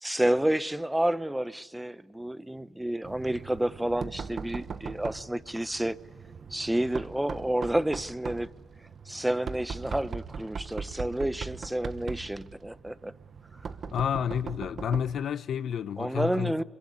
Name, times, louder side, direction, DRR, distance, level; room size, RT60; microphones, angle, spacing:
voice 1, 0.0-6.0 6.5-8.5 9.1-13.1 16.0-16.6, right 1 dB, 10° right, 0.8 m, -30 dB
Knock, 3.0-15.3, right 5 dB, 55° right, 1.1 m, -40 dB
voice 2, 13.8-16.6, left 8 dB, 70° left, 0.8 m, -30 dB
24.0 x 22.5 x 9.7 m
cardioid pair, 75°, 0 cm